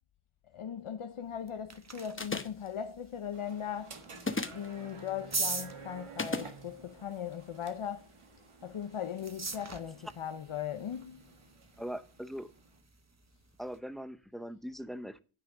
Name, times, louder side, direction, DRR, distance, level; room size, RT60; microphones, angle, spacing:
voice 1, 0.5-4.0 4.5-8.1 8.6-11.3, left 8 dB, 75° left, 0.7 m, -39 dB
sound 1, 1.2-13.8, right 3 dB, 30° right, 1.1 m, -44 dB
sound 2, 2.2-2.7 4.2-4.7 6.2-6.5, left 3 dB, 25° left, 0.9 m, -34 dB
sound 3, 3.3-12.8, right 4 dB, 90° right, 1.6 m, -52 dB
voice 2, 11.8-12.5 13.6-15.2, equal, ahead, 0.6 m, -41 dB
9.6 x 5.7 x 6.6 m
wide cardioid pair, 75°, 50 cm